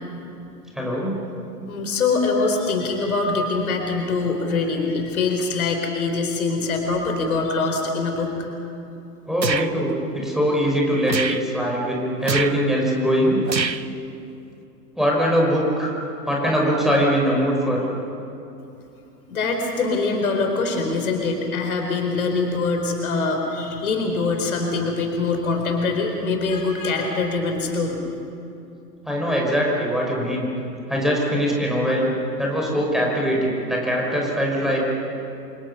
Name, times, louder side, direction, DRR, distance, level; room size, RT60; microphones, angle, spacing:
voice 1, 0.7-1.1 9.3-13.4 14.9-15.9 16.3-17.8 29.0-30.5 30.9-32.1 32.4-34.9, equal, ahead, -2 dB, 5.5 m, -22 dB
voice 2, 1.6-8.3 19.3-28.0, left 3 dB, 55° left, 3 dB, 4.4 m, -23 dB
sound 1, 9.4-9.7 11.0-11.4 12.2-12.5 13.5-13.9, right 5 dB, 90° right, 0.9 m, -25 dB
28.5 x 27.5 x 5.6 m, 2.7 s
figure-of-eight pair, 110°, 50 cm